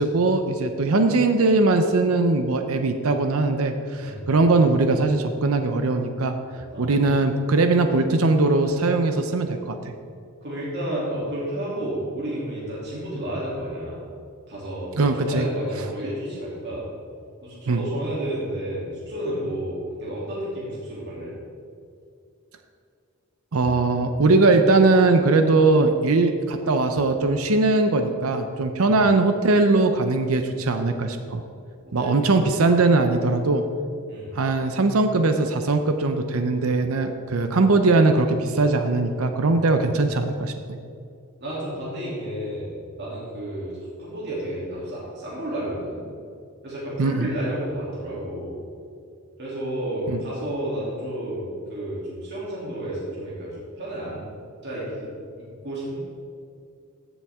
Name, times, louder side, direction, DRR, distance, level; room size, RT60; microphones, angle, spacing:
voice 1, 0.0-6.4 6.8-9.9 15.0-15.5 17.7-17.8 23.5-31.4 31.9-33.6 34.4-40.8 47.0-47.3 50.1-50.2, right 3 dB, 90° right, 7 dB, 0.7 m, -20 dB
voice 2, 10.4-14.1 14.5-16.8 17.4-21.3 28.8-29.0 31.8-32.1 34.1-34.4 41.4-46.0 46.6-48.5 49.4-53.5 53.8-54.3 54.6-55.1 55.4-56.0, right 1 dB, 55° right, -7 dB, 2.9 m, -31 dB
15.0 x 7.2 x 3.6 m, 2.4 s
head